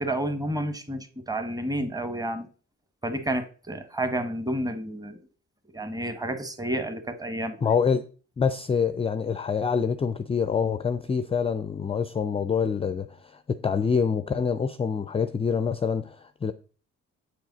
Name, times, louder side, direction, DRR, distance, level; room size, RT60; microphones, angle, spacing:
voice 1, 0.0-2.5 3.0-5.2 5.7-7.7, right 1 dB, 10° right, 1.0 m, -30 dB
voice 2, 7.6-8.0 8.4-16.5, left 6 dB, 20° left, 0.4 m, -26 dB
7.8 x 4.8 x 3.9 m
cardioid pair, 90°, 30 cm